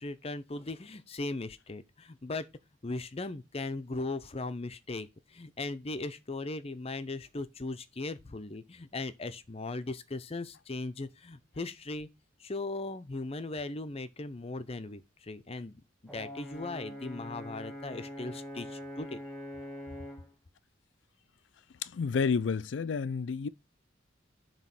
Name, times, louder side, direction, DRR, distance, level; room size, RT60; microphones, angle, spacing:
voice 1, 0.0-2.5 2.8-12.1 12.4-15.8 16.1-19.2, left 2 dB, 35° left, 0.6 m, -38 dB
Brass instrument, 16.1-20.3, equal, ahead, 1.7 m, -43 dB
voice 2, 21.8-23.5, left 5 dB, 75° left, 0.4 m, -30 dB
7.4 x 3.0 x 5.9 m
head